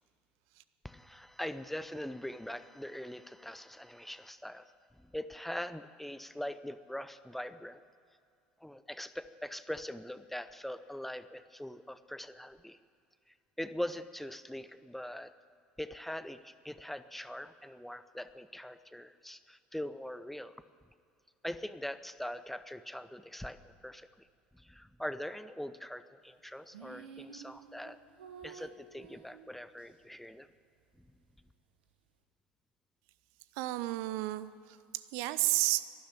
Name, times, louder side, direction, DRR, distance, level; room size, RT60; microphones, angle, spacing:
voice 1, 0.8-4.7 5.0-7.8 8.6-12.8 13.6-15.3 15.8-20.6 21.4-24.3 24.5-28.0 28.4-30.5 31.0-31.1, left 1 dB, 5° left, 13 dB, 0.6 m, -42 dB
sound 1, 26.7-29.9, right 7 dB, 75° right, 1.2 m, -51 dB
voice 2, 33.5-35.8, right 17 dB, 60° right, 14 dB, 0.5 m, -32 dB
12.0 x 11.5 x 8.3 m, 2.4 s
figure-of-eight pair, 65°, 5 cm